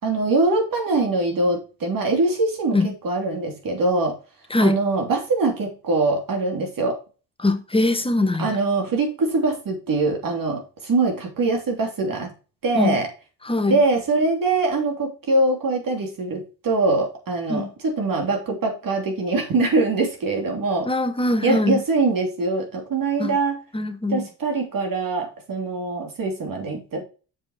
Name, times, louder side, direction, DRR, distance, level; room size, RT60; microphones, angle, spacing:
voice 1, 0.0-2.8 3.0-4.1 4.6-7.0 8.4-12.3 12.6-13.1 13.7-20.9 21.4-23.6 24.1-27.0, right 3 dB, 55° right, 3.1 m, -23 dB
voice 2, 4.5-4.8 7.4-8.5 12.7-13.0 13.4-13.8 17.5-17.7 20.8-21.8 23.2-23.4 23.7-24.3, left 2 dB, 15° left, 1.4 m, -22 dB
7.3 x 5.1 x 4.9 m
cardioid pair, 80°, 40 cm